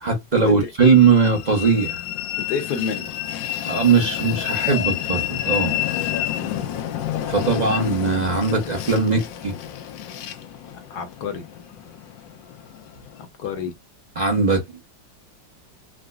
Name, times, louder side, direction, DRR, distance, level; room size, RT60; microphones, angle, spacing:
voice 1, 0.0-2.0 3.6-5.8 7.3-9.5 14.2-14.8, right 4 dB, 35° right, 0.7 m, -19 dB
Train, 0.8-13.3, left 12 dB, 80° left, 1.3 m, -29 dB
voice 2, 2.5-3.1 5.6-5.8 6.4-6.7 10.9-11.4 13.4-13.7, left 6 dB, 65° left, 1.4 m, -29 dB
4.9 x 2.1 x 2.3 m
omnidirectional pair, 2.1 m